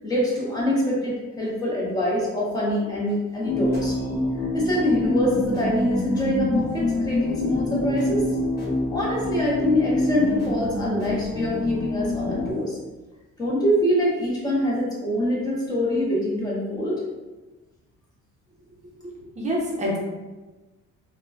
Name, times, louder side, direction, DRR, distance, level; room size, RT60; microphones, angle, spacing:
voice 1, 0.0-4.0 4.5-8.2 8.9-12.8 13.4-17.0, left 1 dB, 10° left, -5 dB, 0.7 m, -24 dB
sound 1, 3.4-12.5, left 1 dB, 30° left, 1.0 m, -26 dB
voice 2, 19.0-20.0, equal, 25° right, -3 dB, 0.6 m, -27 dB
3.7 x 2.1 x 2.2 m, 1.2 s
cardioid pair, 160°, 31 cm